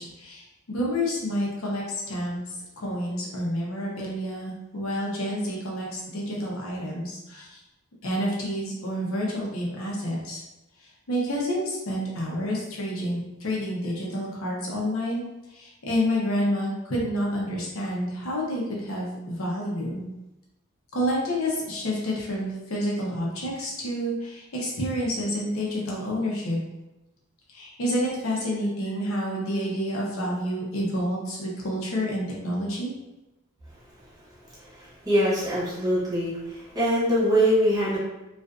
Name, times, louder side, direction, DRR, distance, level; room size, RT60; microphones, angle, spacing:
voice 1, 0.0-2.4 2.8-7.4 8.0-10.4 11.1-15.2 15.5-20.0 20.9-26.6 27.5-32.9, equal, 80° left, -4 dB, 0.7 m, -29 dB
voice 2, 34.5-38.0, equal, 20° right, -8 dB, 0.9 m, -24 dB
2.4 x 2.4 x 2.3 m, 0.99 s
head